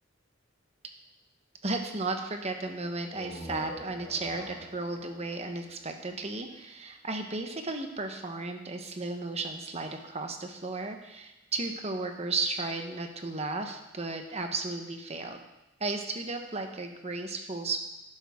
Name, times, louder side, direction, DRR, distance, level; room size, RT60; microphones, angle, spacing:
voice 1, 1.6-15.4 15.8-17.8, right 3 dB, 35° right, 5 dB, 1.1 m, -34 dB
sound 1, 3.0-6.6, equal, 35° left, 3.6 m, -45 dB
12.0 x 10.5 x 3.7 m, 0.97 s
head